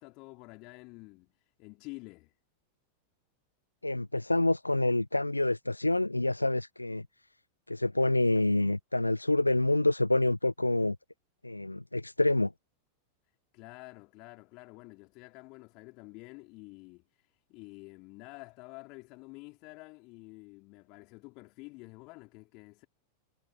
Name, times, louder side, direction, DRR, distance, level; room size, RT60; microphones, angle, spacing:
voice 1, 0.0-2.3 13.5-22.9, left 26 dB, 40° left, 3.3 m, -49 dB
voice 2, 3.8-7.1 7.7-11.0 11.4-12.5, left 2 dB, 85° left, 0.9 m, -27 dB
figure-of-eight pair, 90°, 0 cm